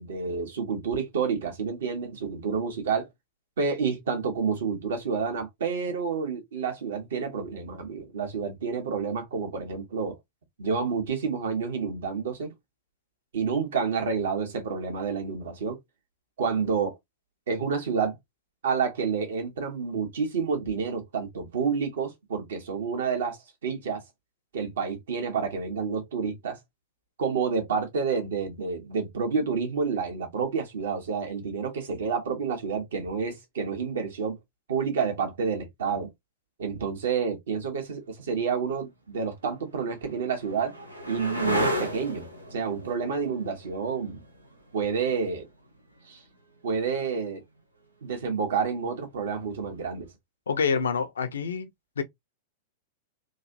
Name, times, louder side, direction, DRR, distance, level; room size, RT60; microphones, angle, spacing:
voice 1, 0.0-3.1 3.6-10.2 10.6-12.5 13.3-15.8 16.4-16.9 17.5-18.2 18.6-24.0 24.5-26.6 27.2-34.4 34.7-36.1 36.6-40.7 41.1-44.2 44.7-45.5 46.1-46.2 46.6-47.4 48.0-50.1, right 5 dB, 60° right, 1.1 m, -29 dB
sound 1, 39.5-46.8 49.2-49.7, equal, 85° right, 0.7 m, -35 dB
voice 2, 50.5-51.7 52.0-52.1, left 6 dB, 65° left, 0.6 m, -27 dB
3.1 x 2.5 x 2.6 m
figure-of-eight pair, 95°, 0 cm